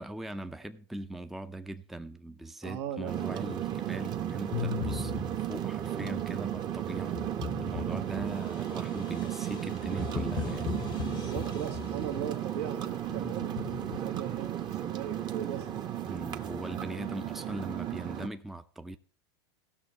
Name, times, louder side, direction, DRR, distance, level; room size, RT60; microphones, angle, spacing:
voice 1, 0.0-7.2 7.6-10.8 16.1-19.0, right 1 dB, ahead, 0.5 m, -40 dB
voice 2, 2.6-3.1 10.9-13.5 14.0-15.7, right 9 dB, 75° right, 1.6 m, -38 dB
sound 1, 3.1-18.3, right 11 dB, 30° right, 1.0 m, -34 dB
sound 2, 4.5-5.7 7.0-12.3 13.1-14.4, left 9 dB, 35° left, 0.7 m, -39 dB
16.5 x 6.4 x 4.3 m
hypercardioid pair, 120°, 14 cm